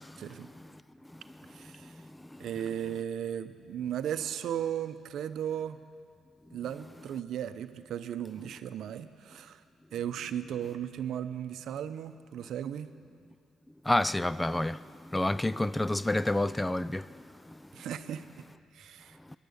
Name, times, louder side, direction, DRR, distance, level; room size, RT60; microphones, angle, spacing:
voice 1, 0.2-0.5 1.5-1.9 2.4-5.8 6.5-9.6 9.9-12.9 17.7-18.3 18.7-19.2, right 10 dB, 75° right, 0.6 m, -36 dB
voice 2, 13.9-14.8 15.1-17.0, left 1 dB, 10° left, 0.3 m, -28 dB
18.0 x 11.5 x 6.6 m
cardioid pair, 90°, 0 cm